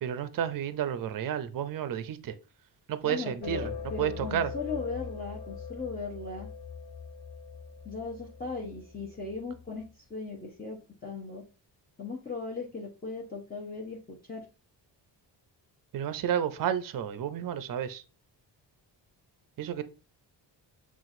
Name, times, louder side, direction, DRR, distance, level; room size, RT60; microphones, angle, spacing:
voice 1, 0.0-2.4 2.9-3.7 4.0-4.5 15.9-18.0 19.6-19.8, right 9 dB, 50° right, 0.5 m, -31 dB
voice 2, 3.0-6.5 7.8-11.4 12.0-14.4, left 3 dB, 20° left, 0.7 m, -38 dB
sound 1, 3.4-10.0, left 6 dB, 70° left, 0.7 m, -42 dB
5.8 x 2.4 x 2.5 m
wide cardioid pair, 115°, 44 cm